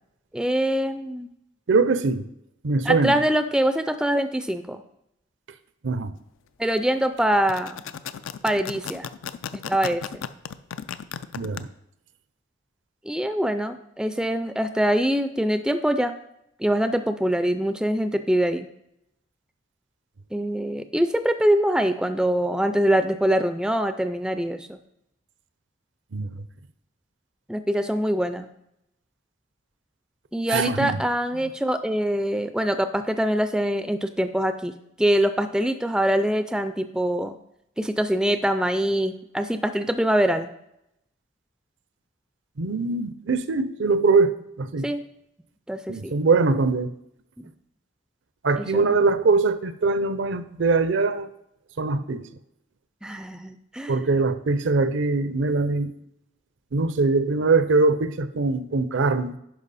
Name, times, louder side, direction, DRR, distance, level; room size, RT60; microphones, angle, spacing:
voice 1, 0.3-1.3 2.9-4.8 6.6-7.8 8.4-9.1 9.5-10.2 13.0-16.1 16.6-18.7 20.3-24.8 27.5-28.5 30.3-34.7 35.0-37.4 37.8-40.5 44.8-45.0 45.7-46.1 47.4-47.5 48.6-49.0 53.0-54.0, equal, 5° right, 9 dB, 0.3 m, -24 dB
voice 2, 1.7-2.2 2.6-3.2 5.8-6.1 11.4-11.7 26.1-26.3 30.5-31.0 42.6-44.9 45.9-46.9 48.4-51.3 51.8-52.2 53.9-55.9 56.7-59.4, right 3 dB, 70° right, 12 dB, 0.6 m, -22 dB
sound 1, 7.3-11.6, left 7 dB, 85° left, 0.4 m, -35 dB
10.5 x 5.4 x 4.1 m, 0.80 s
head